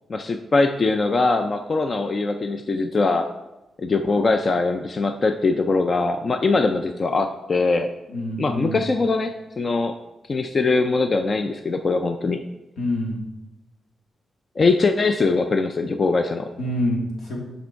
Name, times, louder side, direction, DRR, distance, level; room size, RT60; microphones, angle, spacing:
voice 1, 0.1-3.3 3.8-7.9 8.4-9.9 10.3-12.4 14.6-16.5, left 3 dB, 35° left, 7 dB, 0.4 m, -22 dB
voice 2, 8.1-8.9 12.8-13.2 16.6-17.4, left 1 dB, 85° left, -2 dB, 2.5 m, -26 dB
8.6 x 5.2 x 4.5 m, 1.0 s
wide cardioid pair, 135°, 0 cm